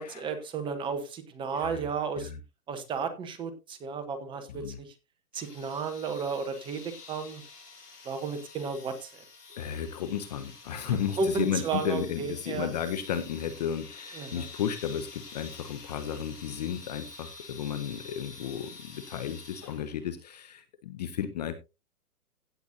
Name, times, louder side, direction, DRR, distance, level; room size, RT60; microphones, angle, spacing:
voice 1, 0.0-2.3 2.7-4.9 5.3-7.4 8.0-9.1 10.8-12.7 14.1-14.5, right 5 dB, 10° right, 9 dB, 0.9 m, -33 dB
sound 1, 5.3-20.1, left 4 dB, 90° left, 6.5 m, -48 dB
voice 2, 9.5-21.5, left 9 dB, 30° left, 12 dB, 0.6 m, -33 dB
16.0 x 7.8 x 2.6 m, 0.26 s
hypercardioid pair, 140°, 46 cm